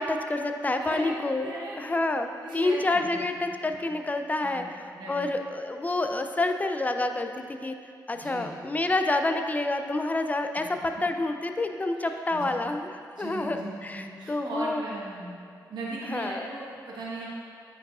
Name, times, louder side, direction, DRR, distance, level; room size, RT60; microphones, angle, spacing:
voice 1, 0.0-1.5 1.8-4.6 5.1-7.8 8.1-10.6 11.0-12.9 13.2-14.8 16.1-16.5, left 2 dB, 20° left, 6 dB, 0.5 m, -28 dB
voice 2, 0.8-1.8 2.4-3.9 4.4-5.3 8.1-8.6 12.0-12.6 13.2-15.3 15.7-17.3, right 1 dB, 75° right, -5 dB, 1.2 m, -38 dB
9.0 x 4.8 x 2.4 m, 2.3 s
cardioid pair, 60°, 8 cm